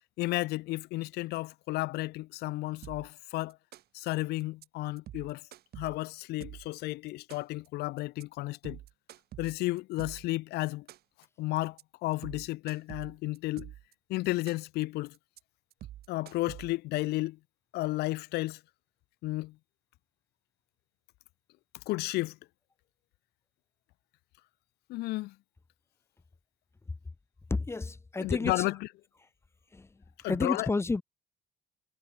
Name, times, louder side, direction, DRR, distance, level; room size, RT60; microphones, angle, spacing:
voice 1, 0.2-3.6 3.9-5.4 5.8-8.8 9.4-10.9 11.4-13.7 14.1-15.2 16.1-17.4 17.7-18.6 19.2-19.6 21.9-22.4 24.9-25.3 28.2-28.8 30.2-30.7, left 19 dB, 75° left, 0.4 m, -33 dB
sound 1, 2.8-3.2 3.5-4.1 4.4-4.7 5.0-6.8 7.1-7.7 8.0-8.2 8.5-10.4 10.7-11.3 11.6-11.8 12.1-13.9 14.2-14.8 15.1-15.4 15.7-17.0, right 13 dB, 65° right, 2.5 m, -47 dB
voice 2, 27.5-28.6 29.7-31.0, left 3 dB, 15° left, 0.9 m, -31 dB
cardioid pair, 110°, 17 cm